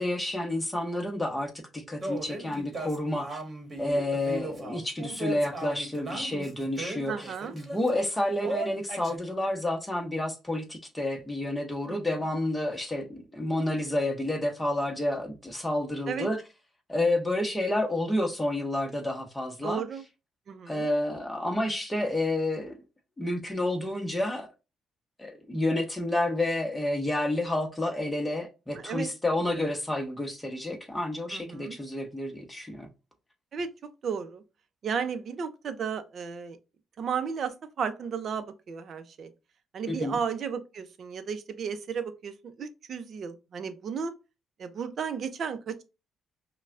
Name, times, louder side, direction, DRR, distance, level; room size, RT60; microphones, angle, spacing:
voice 1, 0.0-3.4 3.8-16.4 16.9-19.8 20.7-22.8 23.2-24.5 25.2-32.9 39.9-40.2, left 1 dB, 10° left, 1.1 m, -30 dB
sound 1, 2.0-7.9 8.4-9.2, right 2 dB, 35° right, 1.3 m, -37 dB
voice 2, 7.1-7.6 11.9-12.2 16.1-16.3 19.6-20.0 20.5-20.9 28.7-29.1 31.3-31.8 33.5-33.7 34.0-34.4 34.8-36.6 37.0-39.3 39.7-44.1 44.6-45.8, right 6 dB, 55° right, 0.6 m, -34 dB
5.3 x 2.3 x 2.5 m
cardioid pair, 90°, 0 cm